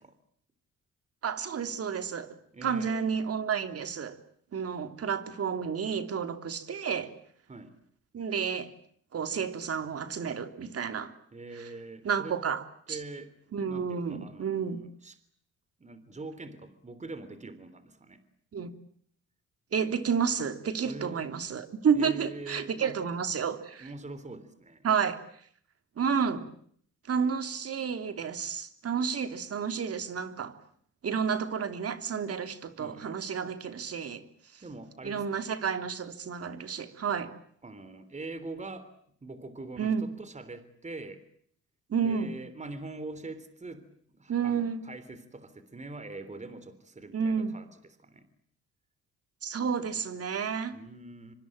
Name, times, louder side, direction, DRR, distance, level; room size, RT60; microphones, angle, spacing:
voice 1, 1.2-2.4 2.6-4.2 4.5-7.1 8.1-8.7 9.1-11.1 11.5-11.7 12.0-12.6 12.9-13.0 13.5-14.8 18.5-18.7 19.7-23.9 24.8-25.2 26.0-26.5 27.1-30.6 31.0-34.2 34.5-34.6 35.0-37.3 39.8-40.1 41.9-42.3 44.3-44.9 47.1-47.6 49.4-50.8, right 6 dB, 50° right, 3.2 m, -30 dB
voice 2, 2.5-3.1 7.5-7.7 11.3-12.4 12.9-13.3 13.6-15.2 15.8-18.2 20.8-21.3 21.9-23.1 23.8-24.9 32.8-33.2 34.6-35.6 37.6-38.9 39.2-41.2 42.0-43.9 44.1-48.3 50.7-51.3, right 2 dB, 25° right, 3.5 m, -43 dB
25.5 x 25.0 x 8.8 m
cardioid pair, 90°, 30 cm